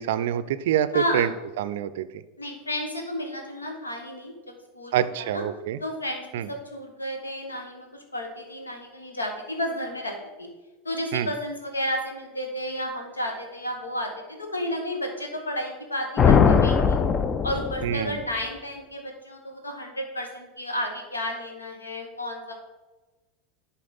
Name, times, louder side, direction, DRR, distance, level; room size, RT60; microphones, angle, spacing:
voice 1, 0.0-1.3 1.6-2.1 4.9-5.8 6.3-6.5 11.1-11.3 17.8-18.2, right 11 dB, 65° right, 14 dB, 0.4 m, -26 dB
voice 2, 0.9-1.3 2.4-5.4 5.8-10.5 10.8-17.0 17.4-22.5, left 1 dB, 85° left, 3 dB, 1.3 m, -32 dB
sound 1, 16.2-18.1, left 6 dB, 30° left, 0.5 m, -20 dB
10.5 x 4.2 x 4.0 m, 1.1 s
figure-of-eight pair, 80°, 0 cm